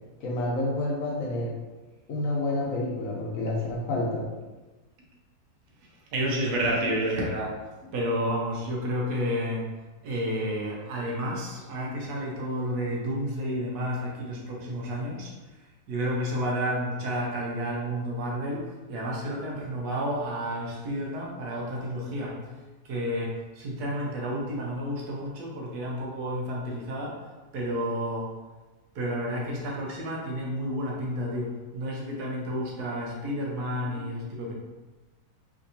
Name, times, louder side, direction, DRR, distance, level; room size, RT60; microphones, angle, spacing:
voice 1, 0.2-1.5 2.1-4.3 6.8-6.9 33.9-34.1, left 2 dB, 65° left, -3 dB, 1.0 m, -29 dB
voice 2, 6.1-7.5 7.9-9.7 10.0-15.3 15.9-22.4 22.8-27.2 27.5-28.3 28.9-34.5, equal, 75° right, -2 dB, 1.3 m, -30 dB
3.7 x 2.6 x 2.7 m, 1.2 s
omnidirectional pair, 1.7 m